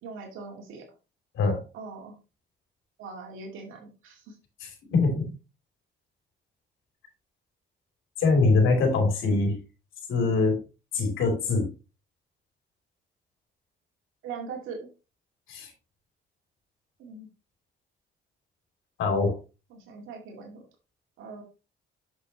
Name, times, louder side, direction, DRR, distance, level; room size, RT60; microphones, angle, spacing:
voice 1, 0.0-0.9 1.7-2.2 3.0-4.4 14.2-14.9 17.0-17.3 19.7-20.6 21.2-21.4, right 4 dB, 90° right, 2 dB, 2.0 m, -41 dB
voice 2, 4.6-5.2 8.2-9.6 10.1-10.6 10.9-11.7 15.5-15.7 19.0-19.4, left 3 dB, 85° left, 3 dB, 3.0 m, -23 dB
7.7 x 6.4 x 2.9 m, 0.30 s
cardioid pair, 90°, 20 cm